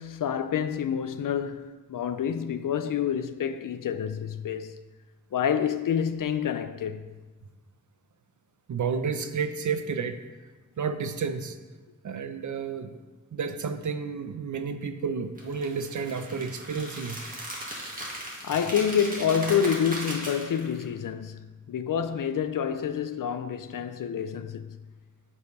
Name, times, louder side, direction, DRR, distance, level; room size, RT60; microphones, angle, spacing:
voice 1, 0.0-4.8 5.3-7.1 18.4-24.8, left 8 dB, 85° left, 0.5 m, -28 dB
voice 2, 8.7-10.2 10.8-11.6 12.0-13.0 13.3-17.2, right 5 dB, 65° right, 0.7 m, -31 dB
sound 1, 15.4-20.8, right 1 dB, 25° right, 1.7 m, -38 dB
8.1 x 5.0 x 5.3 m
wide cardioid pair, 135°, 32 cm